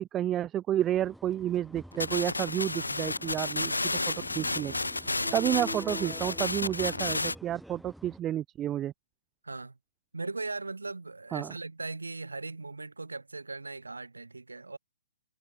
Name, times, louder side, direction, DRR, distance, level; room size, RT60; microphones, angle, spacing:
voice 1, 0.0-3.7 4.1-4.7 5.3-8.9 11.3-11.5, right 11 dB, 20° right, 2.1 m, -30 dB
sound 1, 0.8-8.2, equal, ahead, 5.3 m, -46 dB
sound 2, 1.9-7.3, left 2 dB, 85° left, 2.6 m, -32 dB
voice 2, 10.1-14.8, right 3 dB, 85° right, 2.4 m, -39 dB
figure-of-eight pair, 130°, 0 cm